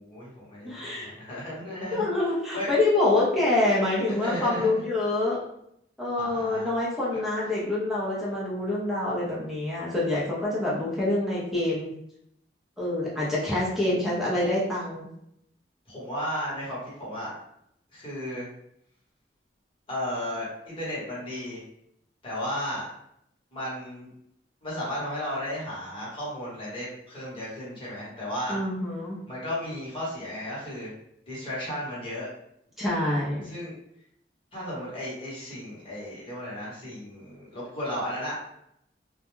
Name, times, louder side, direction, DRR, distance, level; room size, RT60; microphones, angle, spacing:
voice 1, 0.0-2.0 2.5-2.7 4.1-4.9 6.2-6.7 7.1-7.2 13.9-14.2 15.9-17.3 17.9-18.5 19.9-21.6 22.2-22.9 23.5-24.1 24.6-28.6 29.3-30.9 31.3-32.3 33.4-33.7 34.5-38.5, left 1 dB, 30° left, -8 dB, 1.1 m, -34 dB
voice 2, 0.6-1.1 1.9-5.4 6.0-11.9 12.8-15.1 28.5-29.2 32.8-33.5, left 2 dB, ahead, -7 dB, 0.7 m, -26 dB
2.3 x 2.2 x 3.1 m, 0.76 s
head